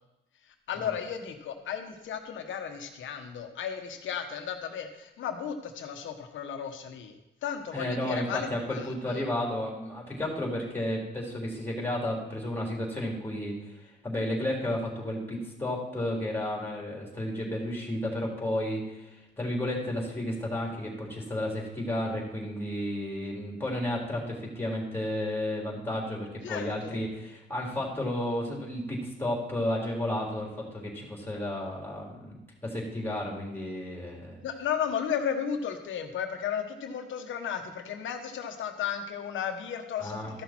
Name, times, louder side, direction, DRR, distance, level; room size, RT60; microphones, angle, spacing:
voice 1, 0.7-7.1 7.4-8.9 26.4-27.0 34.4-40.4, left 8 dB, 75° left, 5 dB, 1.3 m, -34 dB
voice 2, 7.7-34.4 40.0-40.4, left 1 dB, 10° left, -1 dB, 3.4 m, -32 dB
13.5 x 6.2 x 4.4 m, 1.0 s
cardioid pair, 90°, 20 cm